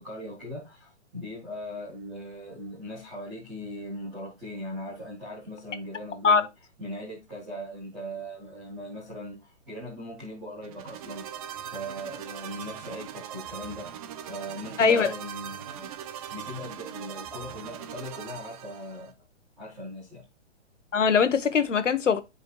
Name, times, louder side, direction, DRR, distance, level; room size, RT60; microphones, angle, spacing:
voice 1, 0.0-6.5 6.8-11.3 11.7-14.0 14.3-15.9 16.3-19.1 19.6-20.2, equal, ahead, 0.3 m, -39 dB
sound 1, 10.6-19.1, right 9 dB, 30° right, 0.8 m, -40 dB
voice 2, 14.8-15.1 20.9-22.2, left 5 dB, 80° left, 1.3 m, -21 dB
10.0 x 5.0 x 2.3 m
hypercardioid pair, 140°, 36 cm